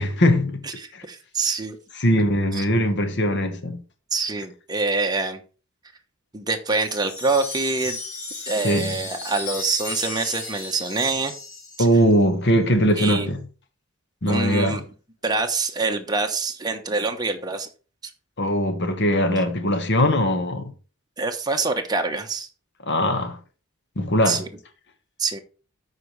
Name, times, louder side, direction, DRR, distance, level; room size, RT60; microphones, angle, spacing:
voice 1, 0.0-0.7 0.9-1.0 2.0-3.8 8.6-8.9 11.8-13.5 14.2-14.8 18.4-20.7 22.8-23.4 24.0-24.4, equal, 55° left, 1.4 m, -21 dB
voice 2, 0.6-1.8 2.5-2.6 4.1-5.4 6.3-8.0 8.4-11.3 13.0-13.3 14.3-14.8 15.2-17.7 18.0-18.1 21.2-22.5 24.3-24.5 25.2-25.4, right 3 dB, 20° right, 1.1 m, -25 dB
Wind chime, 6.7-12.1, left 3 dB, 80° left, 3.2 m, -34 dB
13.5 x 4.8 x 3.3 m
head